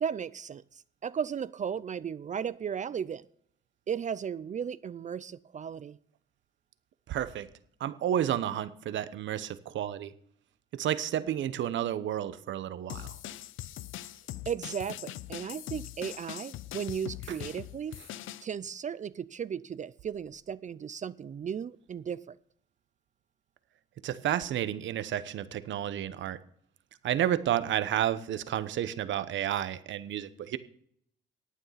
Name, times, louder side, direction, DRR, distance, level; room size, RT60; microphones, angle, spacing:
voice 1, 0.0-3.2 3.9-6.0 14.5-18.0 18.4-22.4, right 7 dB, 40° right, 17 dB, 0.5 m, -35 dB
voice 2, 7.1-7.5 7.8-10.1 10.7-13.2 17.3-17.4 24.0-26.4 27.0-30.6, right 11 dB, 75° right, 13 dB, 1.0 m, -31 dB
sound 1, 12.9-18.4, left 13 dB, 85° left, 0.6 m, -41 dB
11.5 x 9.1 x 5.7 m, 0.64 s
cardioid pair, 90°, 20 cm